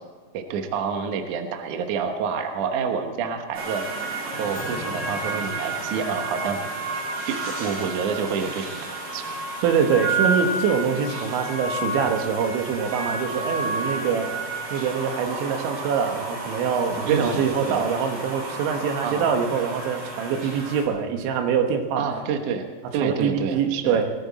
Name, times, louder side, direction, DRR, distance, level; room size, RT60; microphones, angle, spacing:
voice 1, 0.3-3.8 4.3-6.6 7.3-9.2 17.1-17.8 19.0-19.3 22.0-22.7 22.9-24.0, right 6 dB, 65° right, 5 dB, 2.1 m, -28 dB
sound 1, 3.5-20.8, right 2 dB, 45° right, 4.8 m, -31 dB
voice 2, 9.6-14.3 14.7-22.0 23.0-24.1, right 6 dB, 85° right, 4 dB, 3.6 m, -24 dB
20.5 x 14.5 x 4.2 m, 1.3 s
omnidirectional pair, 5.2 m